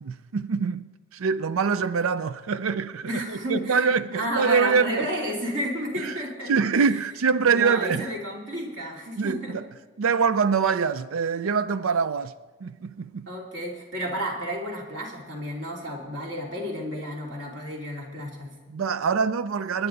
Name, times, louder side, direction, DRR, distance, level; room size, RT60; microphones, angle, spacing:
voice 1, 0.0-5.1 6.0-6.2 6.5-8.1 9.2-9.7 10.0-12.3 12.6-13.3 18.7-19.9, right 5 dB, 85° right, 0.5 m, -24 dB
voice 2, 3.0-6.5 6.8-6.9 7.4-9.6 13.3-18.5, equal, 60° right, 3.1 m, -31 dB
25.5 x 10.5 x 3.9 m
head